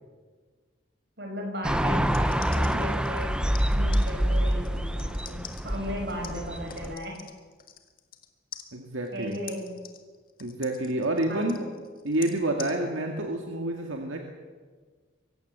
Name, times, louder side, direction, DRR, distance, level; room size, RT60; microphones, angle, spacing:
voice 1, 1.2-3.4 3.7-7.2 9.1-9.7 11.3-11.5, equal, 55° right, 2 dB, 6.1 m, -36 dB
sound 1, 1.6-6.9, equal, 5° right, 0.7 m, -26 dB
sound 2, 2.0-8.3 8.5-12.7, left 10 dB, 45° left, 1.8 m, -46 dB
voice 2, 8.7-9.4 10.4-11.6 12.0-14.2, right 1 dB, 85° right, 2 dB, 2.1 m, -28 dB
24.0 x 15.5 x 7.9 m, 1.5 s
head